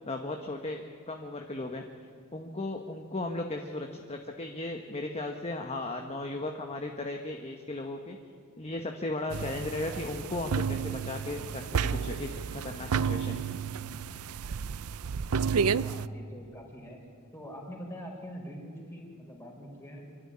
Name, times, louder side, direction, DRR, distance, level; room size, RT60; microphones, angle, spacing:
voice 1, 0.0-1.8 2.3-8.2 8.6-13.5, left 2 dB, 30° left, 3 dB, 1.2 m, -36 dB
sound 1, 9.3-16.1, right 6 dB, 80° right, 0.5 m, -31 dB
voice 2, 15.8-17.0 17.3-20.2, equal, 10° left, -1 dB, 4.6 m, -44 dB
25.5 x 12.5 x 9.9 m, 2.1 s
head